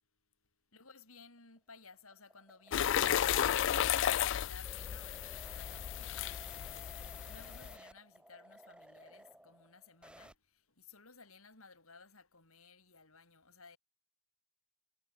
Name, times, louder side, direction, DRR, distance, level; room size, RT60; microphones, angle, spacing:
voice 1, 0.7-3.6 4.0-13.8, left 4 dB, 75° left, 7.5 m, -58 dB
sound 1, 1.4-10.4, right 1 dB, 5° right, 6.0 m, -57 dB
sound 2, 2.7-7.7, left 10 dB, 55° left, 0.3 m, -33 dB
head